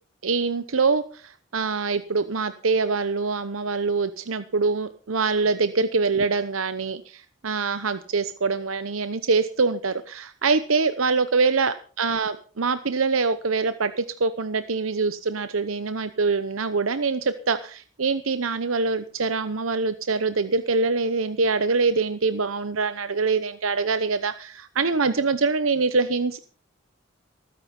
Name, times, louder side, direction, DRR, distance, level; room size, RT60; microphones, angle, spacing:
voice 1, 0.2-26.4, right 4 dB, 90° right, 12 dB, 0.9 m, -24 dB
19.0 x 9.7 x 5.4 m, 0.40 s
head